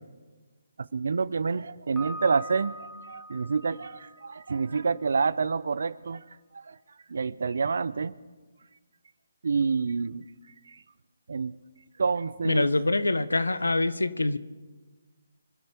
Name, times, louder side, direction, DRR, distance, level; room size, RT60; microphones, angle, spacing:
voice 1, 0.8-6.2 6.5-6.8 7.1-8.1 9.4-10.3 10.7-10.8 11.3-11.6 12.0-12.7, right 5 dB, 65° right, 19 dB, 0.7 m, -28 dB
Piano, 2.0-4.8, equal, ahead, 2.0 m, -44 dB
voice 2, 12.4-14.4, left 2 dB, 90° left, 14 dB, 1.0 m, -25 dB
25.5 x 12.0 x 4.5 m, 1.3 s
figure-of-eight pair, 150°, 0 cm